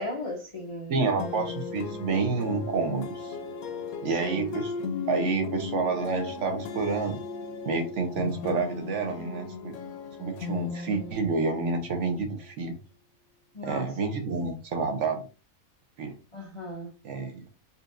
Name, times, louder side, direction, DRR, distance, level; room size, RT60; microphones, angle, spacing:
voice 1, 0.0-1.1 4.0-4.6 13.5-13.9 16.3-16.9, left 1 dB, 50° left, 0.4 m, -36 dB
voice 2, 0.9-3.3 4.0-4.7 5.1-7.2 7.6-9.8 10.2-12.8 13.6-15.3 16.0-16.1 17.0-17.4, right 4 dB, 60° right, 1.0 m, -29 dB
sound 1, 1.2-12.3, left 5 dB, 80° left, 1.1 m, -36 dB
4.2 x 2.6 x 2.4 m
omnidirectional pair, 1.5 m